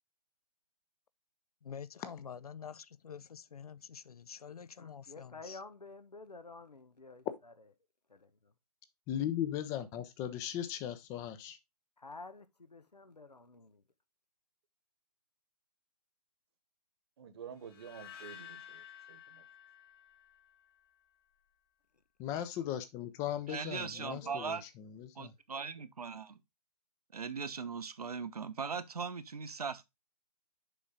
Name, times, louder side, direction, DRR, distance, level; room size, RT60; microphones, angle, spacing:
voice 1, 1.6-5.6, left 7 dB, 70° left, 0.5 m, -47 dB
voice 2, 4.8-7.5 8.1-8.5 12.0-13.8 23.9-24.5, left 3 dB, 90° left, 1.0 m, -51 dB
voice 3, 9.1-11.6 22.2-25.3, left 11 dB, 15° left, 0.5 m, -38 dB
voice 4, 17.2-19.5, right 7 dB, 40° right, 1.2 m, -50 dB
sound 1, 17.6-20.8, left 9 dB, 40° left, 2.0 m, -52 dB
voice 5, 23.5-24.6 25.1-26.4 27.1-29.8, right 5 dB, 70° right, 0.9 m, -39 dB
6.9 x 5.0 x 3.7 m
figure-of-eight pair, 135°, 20 cm